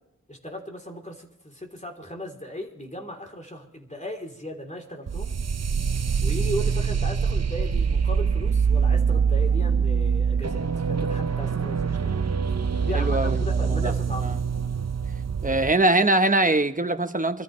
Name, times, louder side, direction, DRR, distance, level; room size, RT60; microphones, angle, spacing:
voice 1, 0.3-5.3 6.2-12.2 12.8-14.4, equal, 25° left, 3.4 m, -36 dB
sound 1, 5.1-15.7, right 6 dB, 55° right, 0.6 m, -24 dB
voice 2, 12.9-13.6 13.8-13.9 14.2-14.3 15.4-17.4, right 2 dB, 25° right, 1.0 m, -22 dB
24.5 x 14.0 x 3.2 m
wide cardioid pair, 50°, 31 cm